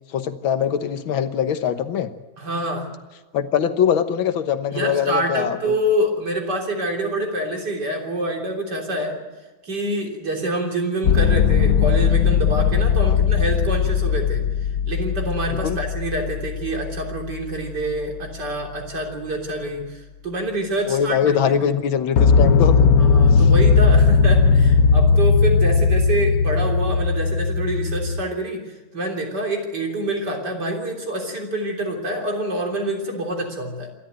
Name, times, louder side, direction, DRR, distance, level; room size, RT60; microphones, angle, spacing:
voice 1, 0.1-2.1 3.3-5.8 15.6-15.8 20.9-22.9 23.3-23.4, left 8 dB, 75° left, 9 dB, 2.0 m, -22 dB
voice 2, 2.4-2.9 4.7-9.2 9.6-14.4 14.8-21.8 23.0-28.7 28.9-33.9, right 1 dB, 55° right, 2 dB, 4.0 m, -26 dB
sound 1, 11.0-18.9 22.2-28.2, left 5 dB, 55° left, 1.2 m, -18 dB
27.0 x 13.0 x 9.2 m, 1.3 s
omnidirectional pair, 2.2 m